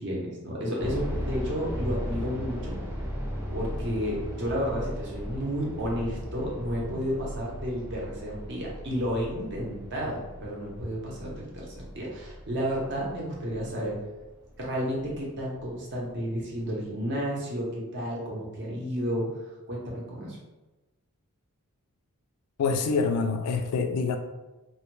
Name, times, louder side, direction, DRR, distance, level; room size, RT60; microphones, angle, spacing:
voice 1, 0.0-2.7 3.5-14.0 14.6-19.3 19.7-20.4, equal, 50° right, -3 dB, 0.7 m, -32 dB
sound 1, 0.8-15.7 15.9-16.0 16.6-16.9, equal, 10° right, 0.5 m, -37 dB
voice 2, 22.6-24.2, left 4 dB, 80° left, 6 dB, 0.3 m, -26 dB
2.1 x 2.1 x 3.0 m, 1.1 s
head